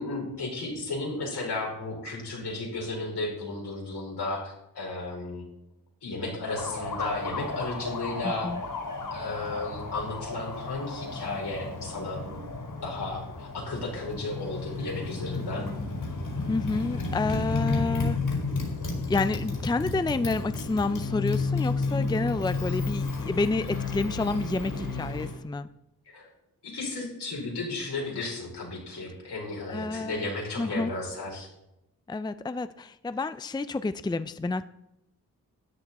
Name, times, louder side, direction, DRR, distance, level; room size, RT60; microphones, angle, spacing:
voice 1, 0.0-5.5 6.0-8.5 9.1-12.2 12.8-15.7 26.0-26.3 26.6-31.5, left 2 dB, 80° left, -2 dB, 4.8 m, -34 dB
Motorcycle, 6.4-25.4, left 3 dB, 60° left, 4.6 m, -32 dB
voice 2, 8.2-8.6 16.5-18.4 19.1-25.7 29.7-30.3 30.6-30.9 32.1-34.6, left 3 dB, 10° left, 13 dB, 0.5 m, -29 dB
13.0 x 9.8 x 4.2 m, 0.85 s
cardioid pair, 55°, 39 cm